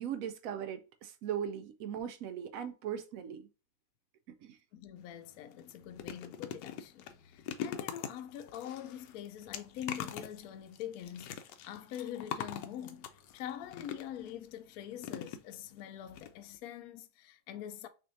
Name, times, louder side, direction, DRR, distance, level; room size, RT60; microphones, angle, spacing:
voice 1, 0.0-3.5 4.4-4.6, right 9 dB, 70° right, 0.8 m, -39 dB
voice 2, 4.7-17.9, left 10 dB, 70° left, 0.9 m, -44 dB
sound 1, 5.0-5.1 5.5-14.3 15.0-15.8 16.1-16.3 16.5-16.6, left 9 dB, 90° left, 1.2 m, -43 dB
6.1 x 2.5 x 2.6 m
omnidirectional pair, 1.8 m